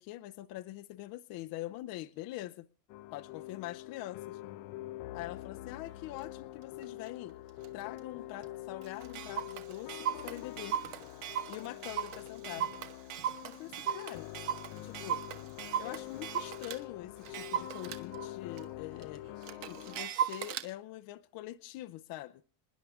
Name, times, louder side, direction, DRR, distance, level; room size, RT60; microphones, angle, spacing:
voice 1, 0.0-2.7 3.1-4.4 5.1-7.4 7.7-10.8 11.5-12.7 13.4-14.3 14.8-15.2 15.8-19.2 19.7-22.4, left 15 dB, 45° left, 0.7 m, -44 dB
sound 1, 2.9-20.0, left 16 dB, 65° left, 1.0 m, -45 dB
Clock, 6.2-6.3 6.8-7.1 7.6-7.7 8.0-8.1 8.4-8.5 8.8-16.8 17.2-20.7, right 9 dB, 60° right, 1.5 m, -37 dB
27.0 x 10.5 x 3.6 m
cardioid pair, 145°, 49 cm